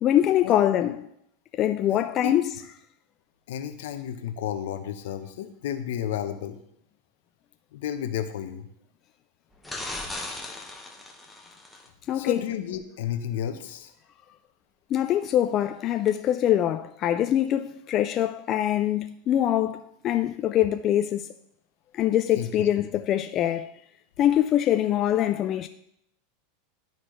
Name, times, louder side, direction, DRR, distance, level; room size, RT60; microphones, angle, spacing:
voice 1, 0.0-1.1 1.6-2.5 12.1-12.4 14.9-21.3 21.9-23.7 24.2-25.7, left 11 dB, 40° left, 0.3 m, -24 dB
voice 2, 1.9-2.3 3.5-6.6 7.7-8.7 12.1-13.9 22.4-22.7, left 10 dB, 75° left, 0.8 m, -32 dB
sound 1, 9.6-11.9 16.1-16.2, left 2 dB, 5° left, 1.0 m, -37 dB
12.0 x 4.0 x 3.2 m
supercardioid pair, 120°, 0 cm